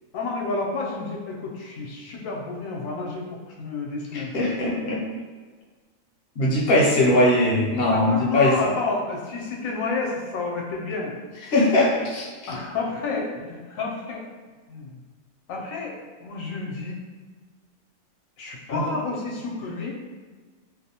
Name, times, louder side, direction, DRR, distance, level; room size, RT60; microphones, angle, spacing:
voice 1, 0.1-4.4 6.5-7.4 7.9-11.1 12.5-14.2 14.7-15.0 15.5-16.0 16.2-16.9 18.4-20.1, left 3 dB, 85° left, -1 dB, 1.0 m, -30 dB
voice 2, 4.1-5.0 6.4-8.5 11.5-12.5 18.7-18.9, left 1 dB, 60° left, -3 dB, 0.7 m, -21 dB
2.5 x 2.0 x 2.7 m, 1.4 s
omnidirectional pair, 1.4 m